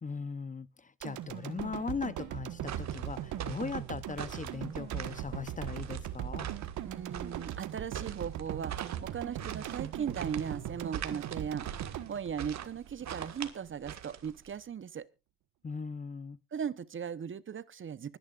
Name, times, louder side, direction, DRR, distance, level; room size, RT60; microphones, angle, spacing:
voice 1, 0.0-6.5 15.6-16.4, left 5 dB, 25° left, 0.8 m, -39 dB
sound 1, 1.0-13.2 13.6-13.7, right 11 dB, 80° right, 1.5 m, -40 dB
sound 2, 2.6-14.6, right 9 dB, 60° right, 1.8 m, -43 dB
voice 2, 6.8-15.1 16.5-18.2, right 7 dB, 40° right, 0.9 m, -38 dB
24.5 x 10.5 x 2.5 m
cardioid pair, 90°, 30 cm